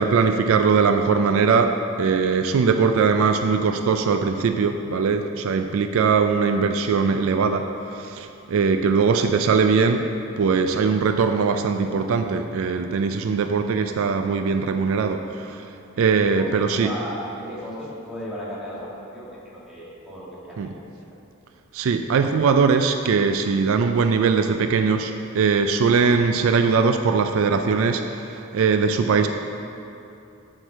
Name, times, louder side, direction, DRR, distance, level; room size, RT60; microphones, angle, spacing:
voice 1, 0.0-15.7 16.0-16.9 20.6-20.7 21.7-29.3, right 5 dB, 65° right, 7 dB, 0.4 m, -21 dB
voice 2, 16.2-20.7, equal, ahead, -8 dB, 1.7 m, -35 dB
8.0 x 4.6 x 6.0 m, 2.8 s
head